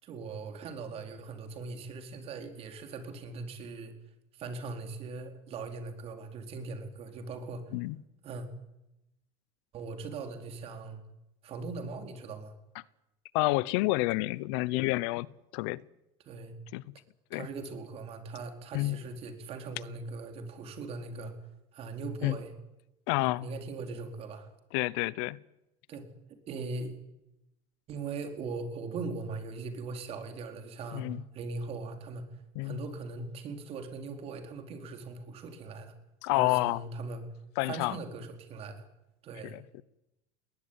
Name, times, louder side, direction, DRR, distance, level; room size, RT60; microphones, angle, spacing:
voice 1, 0.0-3.9 4.3-7.7 8.2-8.5 9.7-11.0 11.4-12.5 16.3-16.5 17.3-21.3 21.7-22.5 23.2-24.5 25.9-26.9 27.9-31.0 31.3-32.3 32.6-35.9 36.3-37.2 37.7-38.8 39.2-39.6, right 3 dB, 45° right, 6 dB, 4.4 m, -40 dB
voice 2, 13.3-15.3 15.5-15.8 16.7-16.8 17.3-17.5 18.7-19.0 22.2-22.4 23.1-23.5 24.7-25.4 30.9-31.2 32.5-32.8 36.2-36.8 37.6-38.0 39.5-39.6, left 21 dB, 80° left, 22 dB, 0.8 m, -29 dB
20.5 x 19.0 x 9.8 m, 0.92 s
cardioid pair, 135°, 14 cm